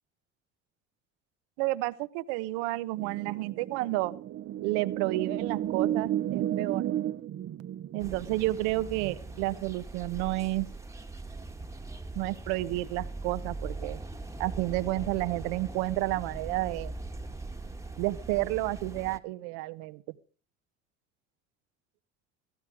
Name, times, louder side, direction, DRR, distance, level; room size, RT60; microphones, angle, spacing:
voice 1, 1.6-4.1 4.6-6.9 7.9-10.7 12.1-14.0 14.4-17.0 18.0-20.0, right 18 dB, 90° right, 15 dB, 1.1 m, -31 dB
sound 1, 3.0-9.8, right 11 dB, 50° right, 0.9 m, -33 dB
sound 2, 8.0-19.2, right 2 dB, 10° right, 1.5 m, -41 dB
17.5 x 15.0 x 5.0 m, 0.38 s
supercardioid pair, 90°, 32 cm